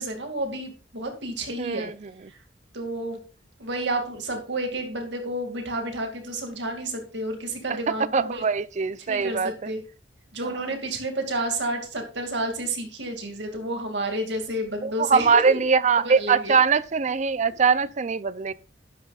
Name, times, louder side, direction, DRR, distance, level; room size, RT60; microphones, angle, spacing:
voice 1, 0.0-1.9 2.7-3.2 3.6-8.4 9.1-9.8 10.3-15.6 16.0-16.5, right 1 dB, 70° right, 2.3 m, -30 dB
voice 2, 1.6-2.1 7.7-9.7 14.8-18.5, right 5 dB, 40° right, 0.4 m, -22 dB
11.5 x 9.8 x 2.4 m
head